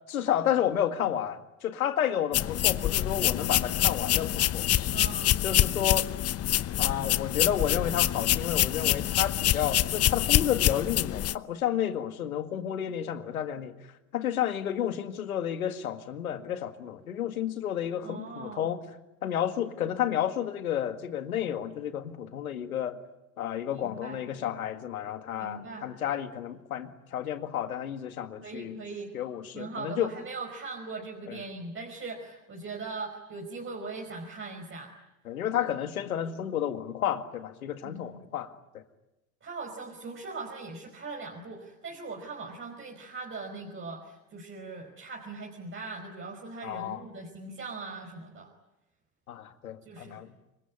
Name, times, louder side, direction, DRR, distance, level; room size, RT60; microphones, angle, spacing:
voice 1, 0.1-4.7 5.4-6.1 6.8-13.7 14.1-18.8 19.2-23.0 23.4-28.8 29.1-30.1 31.3-31.4 35.3-38.8 46.6-47.0 49.3-50.3, left 10 dB, 85° left, 8 dB, 2.1 m, -31 dB
sound 1, 2.3-11.3, left 13 dB, 35° left, 0.9 m, -26 dB
voice 2, 4.9-5.4 18.0-18.7 23.7-24.2 25.3-25.9 28.4-29.1 29.5-35.0 37.8-38.2 39.4-48.5 49.8-50.2, right 3 dB, 30° right, 1 dB, 4.9 m, -40 dB
26.0 x 23.5 x 9.7 m, 0.96 s
hypercardioid pair, 80°, 42 cm